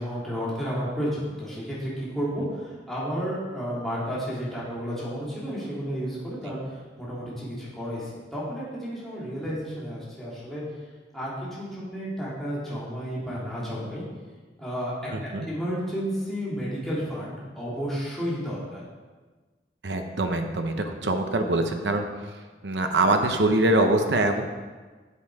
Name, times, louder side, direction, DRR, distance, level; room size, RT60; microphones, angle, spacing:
voice 1, 0.0-10.6 11.1-14.0 14.6-14.9 15.2-18.8, equal, ahead, -9 dB, 2.8 m, -32 dB
voice 2, 15.1-15.5 19.8-22.3 22.6-24.4, right 2 dB, 80° right, 5 dB, 0.9 m, -24 dB
8.1 x 7.6 x 4.8 m, 1.3 s
head